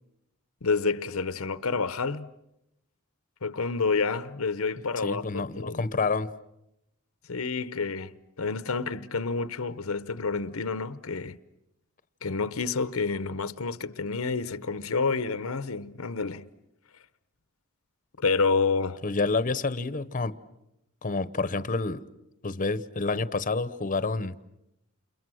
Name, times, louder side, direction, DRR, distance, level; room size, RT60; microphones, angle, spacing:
voice 1, 0.6-2.3 3.4-5.8 7.3-11.4 12.2-16.5 18.2-19.0, left 4 dB, 80° left, 0.9 m, -29 dB
voice 2, 5.0-6.3 19.0-20.3 21.0-22.0 22.4-24.3, left 3 dB, 40° left, 0.9 m, -28 dB
30.0 x 28.5 x 6.3 m
head